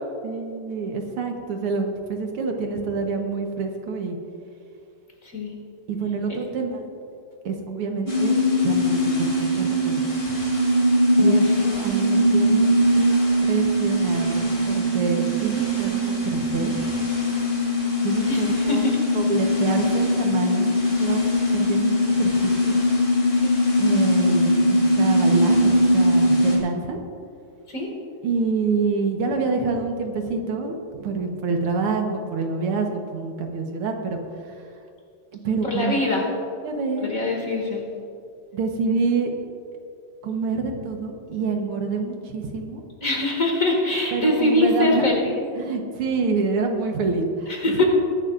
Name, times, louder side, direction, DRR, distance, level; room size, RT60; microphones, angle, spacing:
voice 1, 0.2-4.2 5.9-6.9 7.4-8.3 8.6-9.9 11.2-11.4 11.6-12.7 12.9-16.9 18.0-18.9 19.1-22.8 23.8-27.0 28.2-34.2 35.4-36.0 36.6-37.1 38.5-39.3 40.2-42.8 44.1-45.1 45.6-47.8, right 4 dB, 80° right, 3 dB, 2.1 m, -27 dB
sound 1, 8.1-26.6, equal, 25° left, 2.8 m, -21 dB
voice 2, 11.2-11.6 18.3-19.0 23.4-23.5 27.7-27.9 35.6-36.2 37.0-37.8 43.0-45.3 47.5-47.8, left 2 dB, 40° left, -1 dB, 2.4 m, -23 dB
21.5 x 11.5 x 2.5 m, 2.5 s
omnidirectional pair, 2.4 m